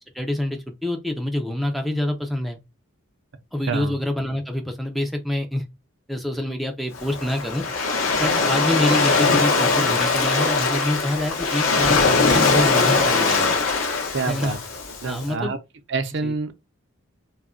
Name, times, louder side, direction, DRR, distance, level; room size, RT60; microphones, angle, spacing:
voice 1, 0.1-2.6 3.5-5.6 6.1-7.6 8.2-13.5 14.3-14.5 15.0-15.6 16.2-16.3, left 1 dB, ahead, 0.3 m, -26 dB
voice 2, 3.7-4.0 14.1-14.6 15.0-15.6 15.9-16.5, right 4 dB, 60° right, 0.5 m, -27 dB
Waves surf, 6.9-15.2, left 4 dB, 80° left, 0.7 m, -21 dB
2.3 x 2.1 x 3.6 m
head